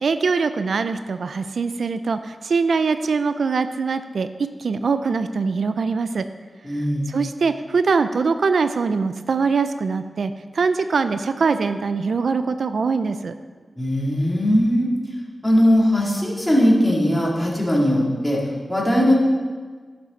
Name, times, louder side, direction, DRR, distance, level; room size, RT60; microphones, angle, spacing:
voice 1, 0.0-6.3 7.1-13.3, right 4 dB, 80° right, 10 dB, 0.3 m, -22 dB
voice 2, 6.6-7.1 13.8-14.9 15.4-18.4 18.7-19.1, equal, 10° left, -4 dB, 2.0 m, -19 dB
11.0 x 6.0 x 4.1 m, 1.5 s
wide cardioid pair, 100°, 0 cm